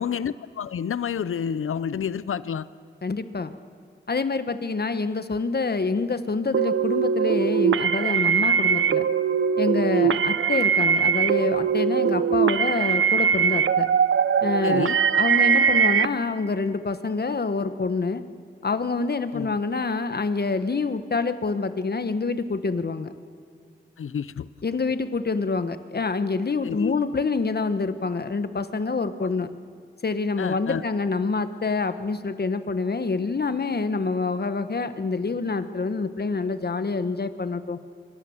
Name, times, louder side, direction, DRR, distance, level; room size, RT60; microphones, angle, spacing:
voice 1, 0.0-2.7 9.9-10.1 14.6-15.0 19.3-19.6 24.0-24.5 26.6-26.9 30.4-30.8, left 7 dB, 85° left, 16 dB, 0.7 m, -29 dB
voice 2, 3.0-3.5 4.1-9.1 9.6-13.9 14.4-18.2 18.6-23.1 24.6-29.5 30.0-37.8, left 4 dB, 50° left, 10 dB, 1.3 m, -26 dB
sound 1, 6.5-16.1, right 7 dB, 75° right, 0.7 m, -21 dB
29.0 x 24.5 x 7.3 m, 2.2 s
cardioid pair, 60°, 21 cm